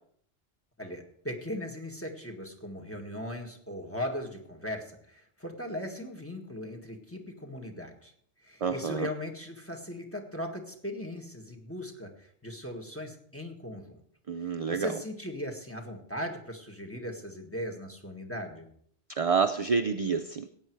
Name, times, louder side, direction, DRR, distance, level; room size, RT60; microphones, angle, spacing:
voice 1, 0.8-8.1 8.4-14.0 14.4-18.7, left 1 dB, 10° left, 2 dB, 1.7 m, -38 dB
voice 2, 8.6-9.1 14.3-14.9 19.1-20.5, right 5 dB, 45° right, 8 dB, 0.5 m, -28 dB
15.5 x 9.2 x 4.7 m, 0.65 s
omnidirectional pair, 1.2 m